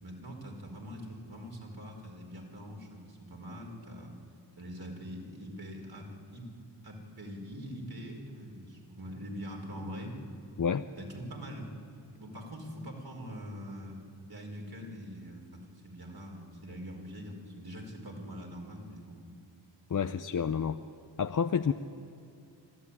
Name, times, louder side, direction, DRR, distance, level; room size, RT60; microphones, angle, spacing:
voice 1, 0.0-4.1 4.6-6.4 6.8-10.1 11.0-11.7 12.2-14.0 14.3-19.3, equal, 50° right, 1 dB, 5.1 m, -43 dB
voice 2, 19.9-20.8 21.2-21.7, left 7 dB, 45° left, 8 dB, 0.7 m, -29 dB
26.0 x 13.5 x 9.9 m, 2.4 s
cardioid pair, 50°, 46 cm